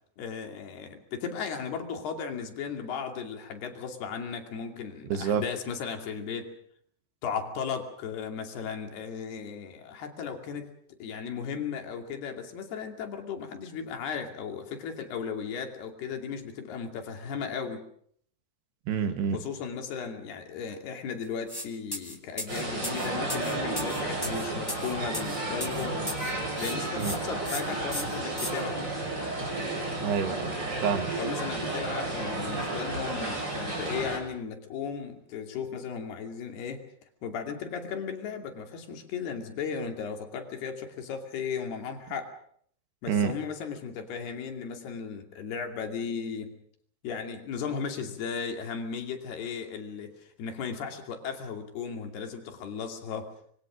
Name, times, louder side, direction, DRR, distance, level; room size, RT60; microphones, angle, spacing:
voice 1, 0.2-6.5 7.2-10.7 11.0-17.9 19.3-26.1 26.6-28.9 31.2-36.8 37.2-42.3 43.0-46.6 47.0-53.3, left 6 dB, 70° left, 4 dB, 4.5 m, -36 dB
voice 2, 5.1-5.4 18.9-19.4 27.0-27.2 30.0-31.1 43.1-43.3, right 7 dB, 75° right, 8 dB, 4.0 m, -28 dB
sound 1, 21.5-21.7 21.9-26.3 26.6-27.2 27.4-27.6 27.9-28.5, left 1 dB, 10° left, 1.5 m, -36 dB
sound 2, 22.5-34.2, right 2 dB, 25° right, 6.1 m, -32 dB
25.5 x 23.5 x 6.4 m, 0.65 s
omnidirectional pair, 4.8 m